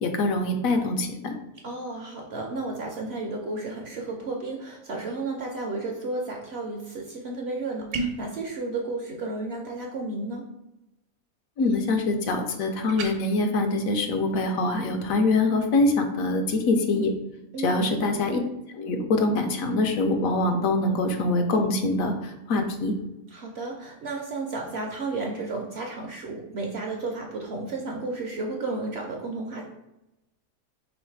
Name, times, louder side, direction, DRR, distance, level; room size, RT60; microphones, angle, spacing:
voice 1, 0.0-1.4 11.6-17.1 17.6-18.4 18.7-22.9, left 2 dB, 75° left, 5 dB, 1.0 m, -24 dB
voice 2, 1.6-10.4 17.5-18.0 23.3-29.6, right 3 dB, 65° right, 0 dB, 0.7 m, -33 dB
sound 1, 7.9-8.3 12.9-13.1, right 3 dB, 85° right, 1.2 m, -30 dB
3.2 x 3.2 x 4.4 m, 0.93 s
omnidirectional pair, 1.6 m